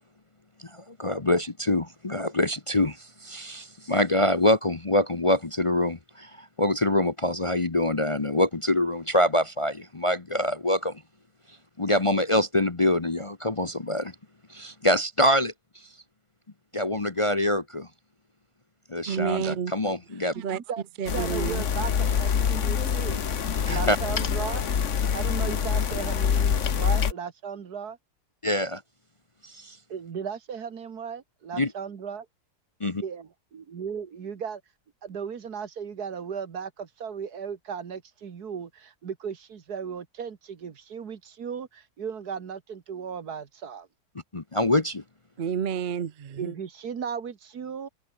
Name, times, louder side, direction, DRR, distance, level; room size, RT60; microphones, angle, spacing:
voice 1, 0.7-11.0 11.8-14.1 14.5-15.5 16.7-17.9 18.9-20.3 23.6-24.0 28.4-28.8 29.4-29.8 31.6-31.7 32.8-32.9 44.3-45.0, left 1 dB, 25° left, 0.8 m, -25 dB
voice 2, 19.1-19.7 20.3-20.6 21.0-21.6 45.4-46.5, right 7 dB, 45° right, 0.8 m, -29 dB
voice 3, 20.3-20.8 21.1-21.9 22.2-23.2 23.7-24.6 25.1-28.0 29.9-32.2 33.0-33.3 33.5-34.6 35.0-43.9 46.4-47.9, right 7 dB, 75° right, 2.2 m, -36 dB
sound 1, 21.1-27.1, left 7 dB, 50° left, 1.5 m, -25 dB
omnidirectional pair, 1.7 m